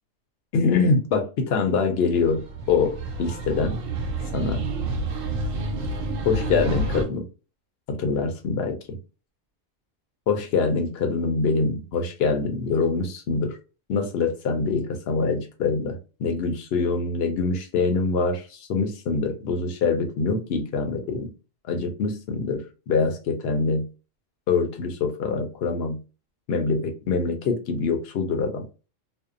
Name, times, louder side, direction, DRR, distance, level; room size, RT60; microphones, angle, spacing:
voice 1, 0.5-3.8 4.3-4.6 6.3-7.2 7.9-9.0 10.3-13.6 13.9-18.4 18.7-21.3 21.7-23.9 24.5-26.0 26.5-28.6, left 4 dB, 60° left, 0.8 m, -24 dB
sound 1, 2.1-7.0, right 2 dB, 85° right, 1.0 m, -29 dB
2.7 x 2.0 x 2.4 m
omnidirectional pair, 1.3 m